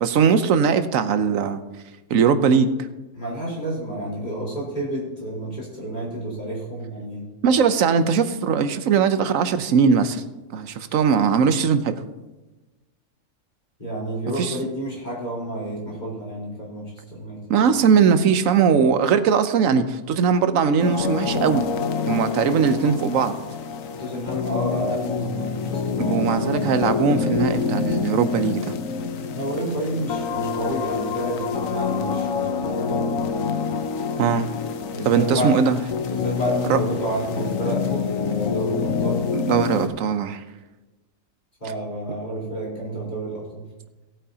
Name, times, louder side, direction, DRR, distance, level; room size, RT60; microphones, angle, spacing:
voice 1, 0.0-1.6 2.1-2.7 7.4-10.2 10.5-12.0 14.4-14.6 17.5-21.7 22.1-23.3 26.0-28.7 34.2-34.5 35.0-35.8 36.7-36.8 39.3-40.4, right 6 dB, 90° right, 10 dB, 1.2 m, -20 dB
voice 2, 3.1-7.3 13.8-17.4 24.0-26.6 29.3-33.4 34.9-35.6 36.1-39.3 41.6-43.6, right 1 dB, 35° left, -5 dB, 4.1 m, -30 dB
sound 1, 20.8-39.9, left 6 dB, 85° left, 1.2 m, -27 dB
18.0 x 8.9 x 2.8 m, 1.1 s
omnidirectional pair, 1.3 m